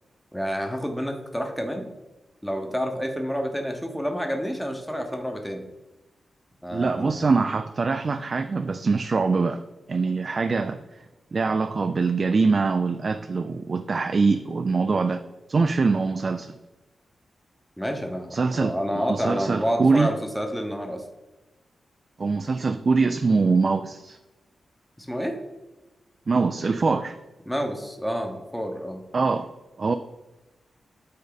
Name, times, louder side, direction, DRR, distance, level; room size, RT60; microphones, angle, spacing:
voice 1, 0.3-1.9 2.4-5.6 6.6-7.3 17.8-21.0 25.0-25.4 27.5-29.0, equal, 5° left, 4 dB, 0.9 m, -29 dB
voice 2, 6.7-9.6 9.9-10.8 11.3-15.2 15.5-16.6 18.3-18.7 19.1-20.1 22.2-24.2 26.3-27.2 29.1-29.5 29.8-30.0, right 4 dB, 45° right, 9 dB, 0.3 m, -23 dB
8.7 x 3.9 x 4.0 m, 1.1 s
wide cardioid pair, 105°, 0 cm